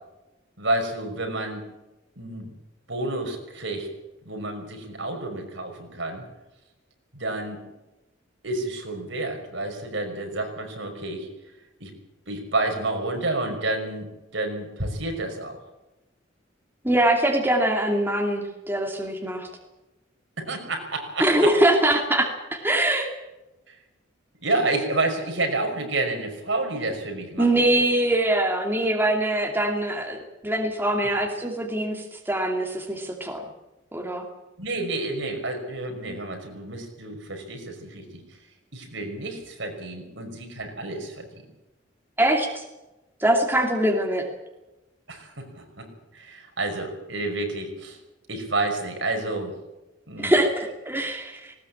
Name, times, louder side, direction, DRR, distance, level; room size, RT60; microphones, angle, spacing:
voice 1, 0.6-1.7 2.2-2.5 2.9-3.9 4.2-6.2 7.1-7.6 8.4-11.3 11.8-11.9 12.3-15.6 20.4-21.5 23.7-23.8 24.4-27.8 34.6-38.2 38.7-41.3 45.1-45.9 46.1-48.0 48.3-49.5 50.1-50.3, right 2 dB, 70° right, 3 dB, 5.7 m, -29 dB
voice 2, 16.8-19.5 21.2-23.1 27.4-33.4 33.9-34.2 42.2-42.6 43.2-44.2 50.2-51.5, right 1 dB, 10° right, 2 dB, 2.6 m, -23 dB
19.5 x 19.0 x 8.7 m, 1.0 s
head